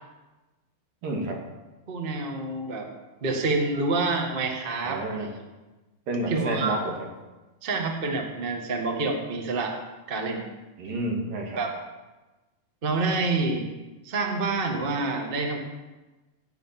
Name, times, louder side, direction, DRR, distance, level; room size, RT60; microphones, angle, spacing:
voice 1, 1.0-1.4 4.8-5.3 6.1-7.1 10.8-11.6, right 2 dB, 80° right, 1 dB, 3.8 m, -30 dB
voice 2, 1.9-2.9 3.2-5.4 6.3-6.8 7.6-9.8 10.1-10.4 11.6-11.7 12.8-13.6 14.0-15.6, right 3 dB, 40° right, 2 dB, 0.7 m, -27 dB
17.5 x 6.3 x 7.4 m, 1.1 s
omnidirectional pair, 3.9 m